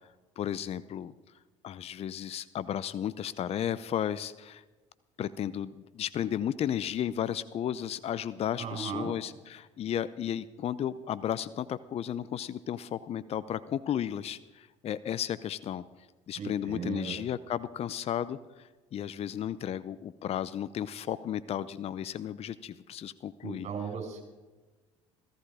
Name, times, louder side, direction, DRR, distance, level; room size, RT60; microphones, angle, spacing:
voice 1, 0.4-1.1 1.6-4.6 5.2-15.8 16.3-23.7, left 10 dB, 45° left, 17 dB, 0.6 m, -34 dB
voice 2, 8.6-9.1 16.4-17.2 23.4-24.2, right 6 dB, 45° right, 2 dB, 5.3 m, -36 dB
16.0 x 14.5 x 4.9 m, 1.2 s
hypercardioid pair, 70°, 15 cm